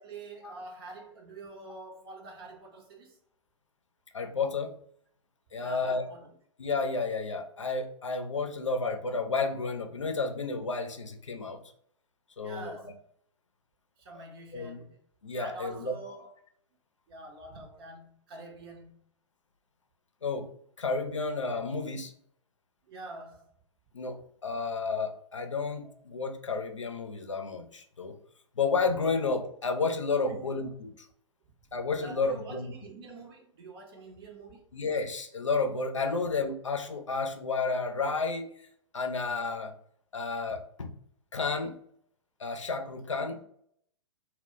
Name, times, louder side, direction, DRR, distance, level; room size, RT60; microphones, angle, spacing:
voice 1, 0.0-3.2 5.6-6.3 12.4-13.0 14.0-15.0 15.4-16.4 17.1-19.0 22.8-23.5 25.8-25.9 30.3-30.5 32.0-34.6 36.1-36.2, right 2 dB, 50° right, 0.7 m, -46 dB
voice 2, 4.1-4.7 5.5-6.0 6.6-11.6 12.4-12.7 14.5-14.8 15.2-16.0 20.2-20.5 20.8-22.1 23.9-28.2 28.6-30.9 31.7-32.7 34.7-38.5 38.9-39.7 40.1-40.9 41.3-41.8 42.4-43.4, left 4 dB, 80° left, 0.5 m, -31 dB
2.1 x 2.1 x 3.7 m
figure-of-eight pair, 105°, 16 cm